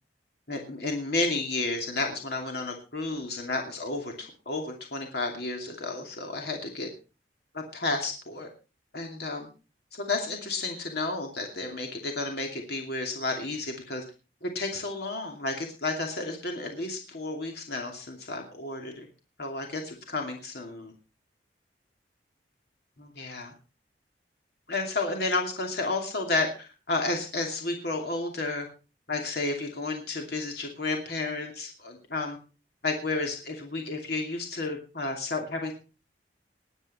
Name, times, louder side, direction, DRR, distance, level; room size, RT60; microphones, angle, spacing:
voice 1, 0.5-6.9 7.5-8.5 8.9-9.5 9.9-14.0 14.4-19.1 19.4-20.9 23.0-23.5 24.7-28.7 29.1-32.4 32.8-35.7, left 3 dB, 65° left, 2 dB, 2.6 m, -32 dB
20.0 x 9.0 x 4.3 m, 0.33 s
head